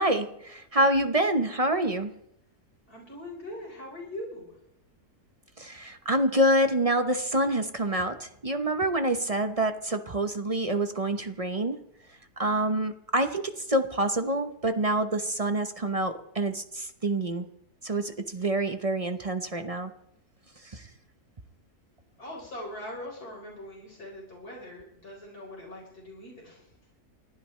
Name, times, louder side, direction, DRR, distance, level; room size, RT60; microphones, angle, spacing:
voice 1, 0.0-2.2 5.6-11.8 12.4-17.5 17.8-19.9 20.6-20.9, right 1 dB, 30° right, 8 dB, 0.7 m, -27 dB
voice 2, 2.9-4.6 22.2-26.6, left 1 dB, 75° left, -2 dB, 4.8 m, -41 dB
29.0 x 12.0 x 3.2 m, 0.77 s
omnidirectional pair, 1.6 m